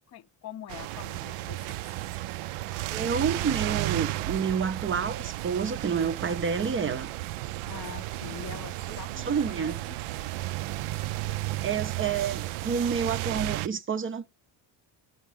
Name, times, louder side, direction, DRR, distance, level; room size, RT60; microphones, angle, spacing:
voice 1, 0.0-1.8 7.7-10.0, left 10 dB, 35° left, 0.5 m, -44 dB
sound 1, 0.7-13.7, right 16 dB, 85° right, 0.5 m, -33 dB
voice 2, 2.9-7.1 9.3-9.7 11.6-14.3, right 6 dB, 25° right, 0.4 m, -29 dB
12.5 x 5.7 x 3.6 m
cardioid pair, 140°, 49 cm